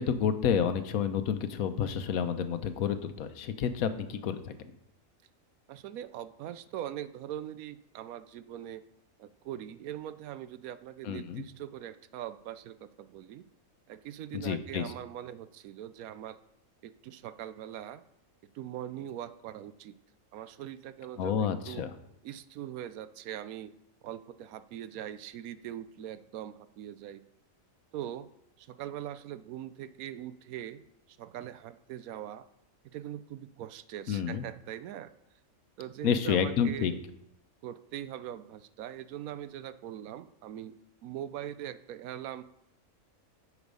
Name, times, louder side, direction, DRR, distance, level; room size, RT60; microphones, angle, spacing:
voice 1, 0.0-4.5 11.0-11.4 14.3-14.9 21.2-21.9 34.1-34.4 36.0-36.9, left 7 dB, 85° left, 10 dB, 1.2 m, -29 dB
voice 2, 5.7-8.8 9.2-13.4 13.9-16.4 16.8-18.0 18.5-19.9 20.3-21.8 22.2-23.7 24.0-27.2 27.9-28.3 28.6-30.8 31.1-32.5 32.9-35.1 35.8-37.0 37.6-40.8 41.0-42.4, right 11 dB, 85° right, 14 dB, 1.0 m, -41 dB
8.2 x 7.1 x 5.4 m, 0.81 s
omnidirectional pair, 1.5 m